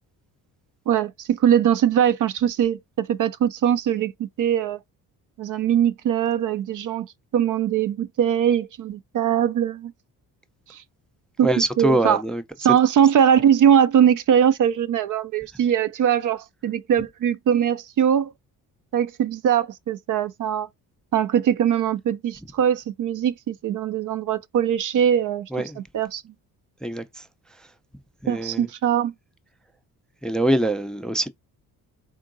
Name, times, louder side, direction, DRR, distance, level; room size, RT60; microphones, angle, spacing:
voice 1, 0.9-4.8 5.4-7.1 7.3-9.9 10.7-10.8 11.4-11.5 11.8-12.2 12.6-18.3 18.9-20.7 21.1-25.5 25.8-26.2 28.3-29.1, right 9 dB, 55° right, 0.5 m, -21 dB
voice 2, 11.4-12.4 25.5-25.8 26.8-27.0 28.2-28.7 30.2-31.3, right 1 dB, ahead, 0.4 m, -23 dB
3.7 x 3.7 x 2.5 m
cardioid pair, 80°, 39 cm